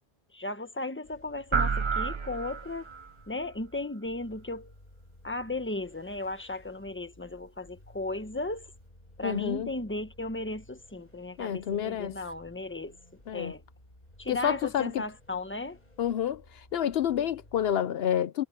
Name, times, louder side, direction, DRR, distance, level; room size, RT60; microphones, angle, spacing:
voice 1, 0.3-2.9 3.3-4.7 5.2-8.7 9.2-13.0 13.3-13.6 14.2-15.8, left 2 dB, 10° left, 1.2 m, -35 dB
sound 1, 1.0-17.7, left 1 dB, 45° left, 5.7 m, -56 dB
sound 2, 1.5-3.1, right 5 dB, 35° right, 0.6 m, -29 dB
voice 2, 9.2-9.7 11.4-12.2 13.3-13.5 14.3-14.9 16.0-16.4 16.7-18.4, left 9 dB, 75° left, 0.9 m, -28 dB
omnidirectional pair, 1.0 m